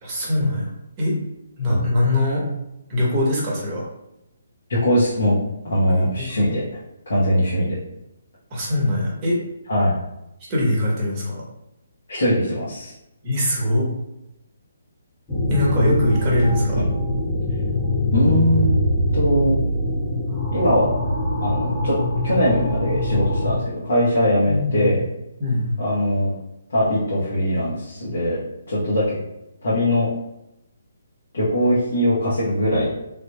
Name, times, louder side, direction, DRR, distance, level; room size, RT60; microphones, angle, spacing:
voice 1, 0.0-0.7 1.0-1.2 1.6-2.4 2.9-3.8 6.0-6.3 8.5-9.4 10.5-11.4 13.2-13.9 15.5-16.8 24.5-24.9 25.4-25.7, left 1 dB, 30° right, -4 dB, 1.0 m, -22 dB
voice 2, 4.7-5.4 5.6-6.6 7.1-7.8 9.7-9.9 12.1-12.9 16.7-16.9 18.1-18.9 19.1-19.6 20.5-21.0 21.4-22.0 22.2-25.0 25.8-26.3 26.7-28.4 28.7-29.2 29.6-30.1 31.3-32.9, equal, 65° left, -10 dB, 1.0 m, -21 dB
sound 1, 15.3-23.6, left 1 dB, 10° left, 0.8 m, -23 dB
3.3 x 2.6 x 2.2 m, 0.87 s
figure-of-eight pair, 135°, 0 cm